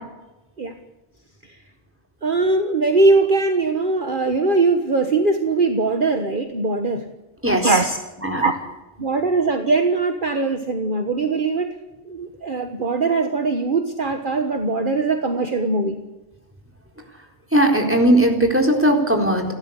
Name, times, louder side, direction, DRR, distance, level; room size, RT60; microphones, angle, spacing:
voice 1, 2.2-7.1 7.6-8.0 8.4-8.5 9.0-11.7 12.1-16.0, right 3 dB, 45° right, 6 dB, 1.6 m, -21 dB
voice 2, 17.5-19.5, right 1 dB, 10° right, 2 dB, 4.2 m, -18 dB
29.5 x 13.0 x 8.3 m, 1.1 s
omnidirectional pair, 1.2 m